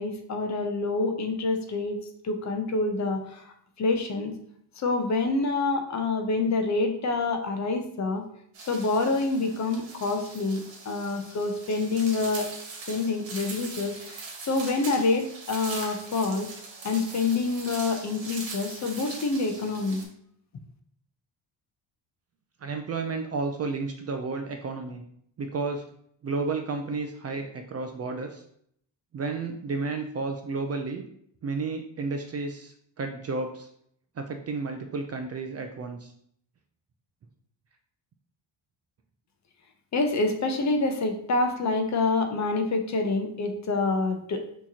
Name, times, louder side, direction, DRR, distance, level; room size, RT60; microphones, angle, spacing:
voice 1, 0.0-2.0 2.2-3.4 3.8-4.3 4.8-8.2 8.7-12.5 12.9-16.5 16.8-20.1 39.9-44.4, left 3 dB, 40° left, 5 dB, 0.6 m, -27 dB
sound 1, 8.5-20.0, right 3 dB, 85° right, 1.4 m, -41 dB
voice 2, 22.6-25.0 25.4-25.8 26.2-28.4 29.1-31.0 31.4-33.7 34.2-36.1, right 3 dB, 35° right, 4 dB, 0.4 m, -32 dB
6.1 x 3.0 x 2.8 m, 0.67 s
cardioid pair, 165°, 45 cm